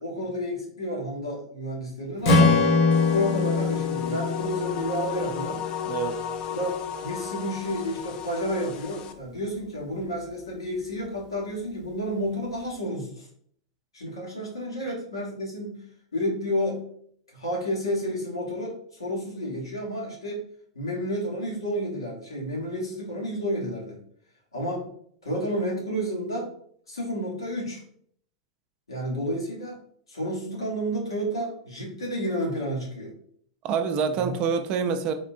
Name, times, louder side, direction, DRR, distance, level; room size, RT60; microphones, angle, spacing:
voice 1, 0.0-2.5 3.1-5.6 6.5-13.3 13.9-15.8 16.1-16.8 17.3-20.4 20.7-24.0 24.5-24.9 25.2-26.5 26.9-27.8 28.9-29.8 30.1-33.1 34.2-34.3, equal, 85° left, -2 dB, 1.1 m, -30 dB
Strum, 2.2-6.5, left 3 dB, 55° left, 1.0 m, -23 dB
sound 1, 2.9-9.1, left 8 dB, 40° left, 0.3 m, -35 dB
voice 2, 5.9-6.2 33.6-35.1, right 6 dB, 40° right, 8 dB, 0.4 m, -26 dB
3.5 x 2.6 x 2.5 m, 0.63 s
hypercardioid pair, 95°, 2 cm